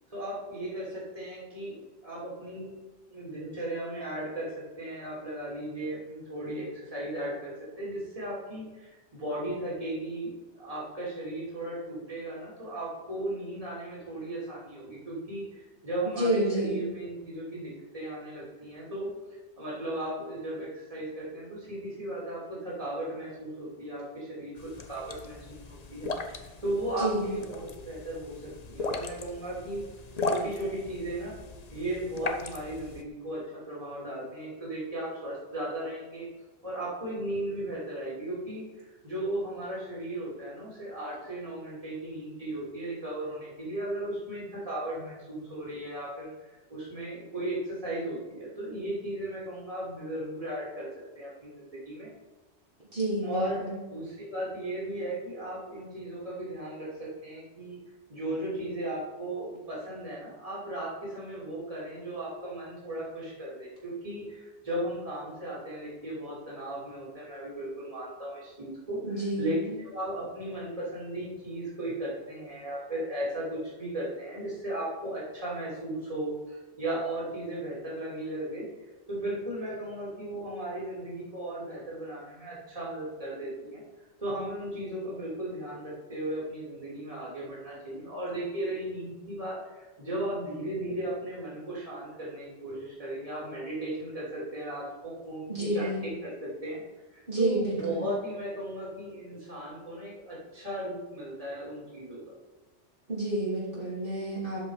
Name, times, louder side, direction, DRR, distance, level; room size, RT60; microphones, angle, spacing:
voice 1, 0.1-2.7 3.1-19.1 19.6-29.8 30.3-31.4 31.7-36.3 36.6-50.9 51.2-52.1 53.2-53.6 53.9-57.8 58.1-78.7 79.1-83.8 84.2-96.8 97.1-102.2, right 1 dB, 30° right, -7 dB, 3.0 m, -36 dB
voice 2, 16.0-16.8 27.0-27.3 52.9-53.8 69.0-69.7 95.5-96.0 97.3-98.1 103.1-104.7, right 1 dB, 50° right, -9 dB, 2.8 m, -29 dB
sound 1, 24.6-33.0, left 3 dB, 40° left, 0.8 m, -37 dB
12.0 x 5.2 x 4.9 m, 1.2 s
omnidirectional pair, 1.2 m